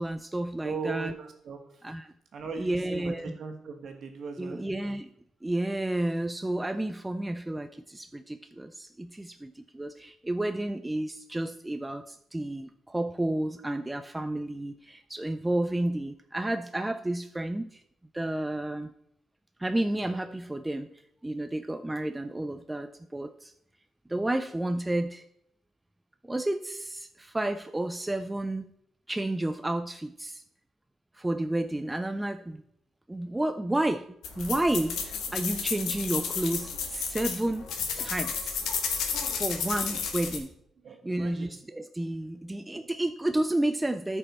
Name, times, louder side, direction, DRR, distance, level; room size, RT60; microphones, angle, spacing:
voice 1, 0.0-1.1 1.8-2.1 2.6-3.3 4.4-5.1 5.4-17.8 18.1-18.9 19.6-20.9 21.2-23.5 24.1-25.2 26.2-28.6 29.1-30.4 31.1-32.6 33.1-34.1 34.4-37.7 38.0-38.6 39.3-40.5 41.0-44.2, right 1 dB, 10° right, 8 dB, 0.4 m, -31 dB
voice 2, 0.6-1.8 2.3-4.6 40.8-41.5 42.7-42.9, right 5 dB, 55° right, 4 dB, 1.6 m, -39 dB
sound 1, 34.2-40.4, left 6 dB, 85° left, 1.5 m, -32 dB
13.5 x 5.4 x 4.3 m, 0.73 s
cardioid pair, 135°, 0 cm